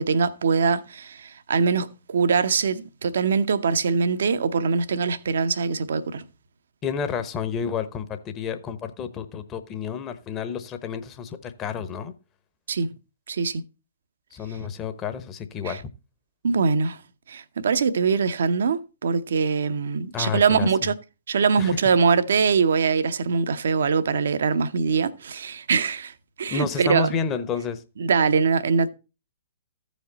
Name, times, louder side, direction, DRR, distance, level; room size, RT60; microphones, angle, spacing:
voice 1, 0.0-6.3 12.7-12.9 13.3-13.6 15.6-15.8 16.4-17.0 17.3-20.9 21.3-27.1 28.0-28.9, right 5 dB, 65° right, 0.7 m, -23 dB
voice 2, 6.8-12.1 14.3-15.8 20.1-20.7 21.6-21.8 26.5-27.8, left 6 dB, 25° left, 1.0 m, -30 dB
14.5 x 5.1 x 4.0 m
figure-of-eight pair, 120°, 0 cm